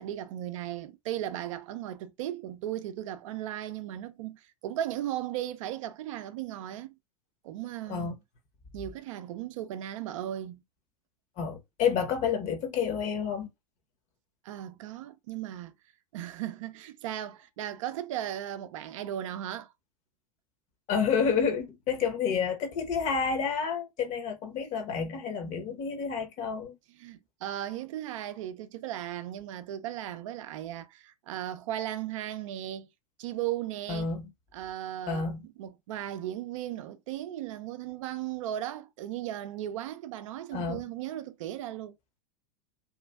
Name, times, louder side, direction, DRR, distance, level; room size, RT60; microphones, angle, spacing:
voice 1, 0.0-6.9 7.4-8.1 8.7-10.6 14.4-15.7 16.1-19.7 27.0-32.9 33.2-34.1 34.5-35.3 35.6-42.0, right 12 dB, 60° right, 0.4 m, -36 dB
voice 2, 11.4-13.5 20.9-26.8 33.9-34.3 35.1-35.5 40.5-40.8, left 6 dB, 40° left, 0.9 m, -29 dB
3.0 x 2.3 x 2.3 m
hypercardioid pair, 90°, 18 cm